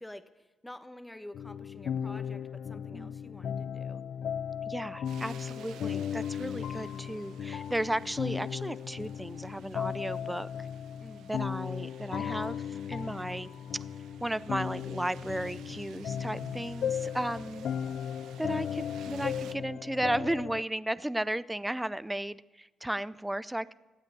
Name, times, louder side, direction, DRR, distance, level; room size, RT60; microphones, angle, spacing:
voice 1, 0.0-4.0 11.0-11.3, left 1 dB, 10° left, 10 dB, 1.1 m, -48 dB
sound 1, 1.3-20.6, left 8 dB, 70° left, 0.4 m, -36 dB
voice 2, 4.7-10.7 11.3-13.5 14.2-17.7 18.4-23.7, right 1 dB, 10° right, 17 dB, 0.4 m, -34 dB
sound 2, 5.0-19.5, right 9 dB, 85° right, 0.7 m, -54 dB
15.5 x 8.2 x 9.4 m, 1.2 s
cardioid pair, 75°, 0 cm